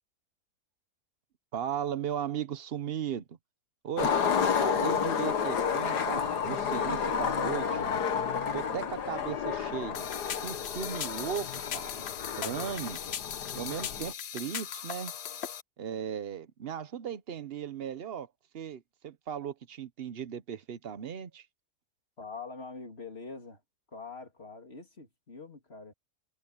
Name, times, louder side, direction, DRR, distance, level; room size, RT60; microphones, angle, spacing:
voice 1, 1.5-3.2 3.8-4.1 4.6-7.8 8.5-10.1 10.4-11.9 12.4-13.0 13.5-15.1 15.8-18.3 18.5-21.5, right 8 dB, 45° right, 0.8 m, -37 dB
Skateboard, 4.0-14.1, left 7 dB, 85° left, 2.0 m, -31 dB
sound 1, 9.9-15.6, left 9 dB, 55° left, 0.8 m, -39 dB
voice 2, 22.2-23.6 23.9-25.9, left 4 dB, 40° left, 3.2 m, -44 dB
omnidirectional pair, 1.7 m